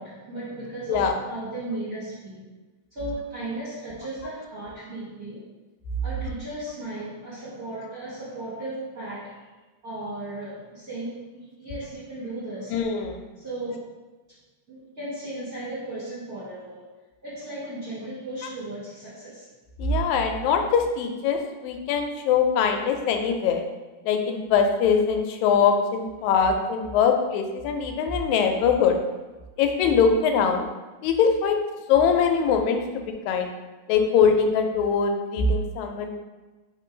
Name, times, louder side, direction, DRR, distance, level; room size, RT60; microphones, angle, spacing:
voice 1, 0.0-2.4 2.9-5.5 6.0-9.5 9.8-12.8 13.3-13.9 14.7-16.8 17.2-19.5 26.2-26.7, right 1 dB, 45° right, -11 dB, 1.2 m, -36 dB
voice 2, 12.7-13.2 19.8-23.6 24.1-29.0 29.6-30.7 31.0-31.6 31.9-33.5 33.9-36.1, left 6 dB, 85° left, 4 dB, 1.9 m, -22 dB
4.0 x 3.2 x 3.7 m, 1.2 s
omnidirectional pair, 3.3 m